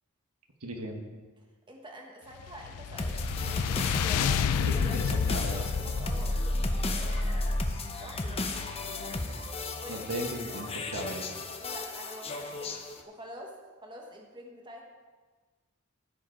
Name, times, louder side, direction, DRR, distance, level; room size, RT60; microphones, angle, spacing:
voice 1, 0.6-1.0 4.4-5.6 9.9-11.2, right 1 dB, 85° right, 3 dB, 1.3 m, -36 dB
voice 2, 1.4-4.4 4.7-7.6 8.0-9.2 9.8-10.2 11.6-13.5 13.8-14.8, right 1 dB, 20° right, 0 dB, 1.1 m, -47 dB
sound 1, 2.4-7.8, left 7 dB, 90° left, 0.3 m, -31 dB
sound 2, 3.0-13.0, left 2 dB, 25° left, 0.7 m, -33 dB
15.0 x 5.1 x 4.5 m, 1.4 s
head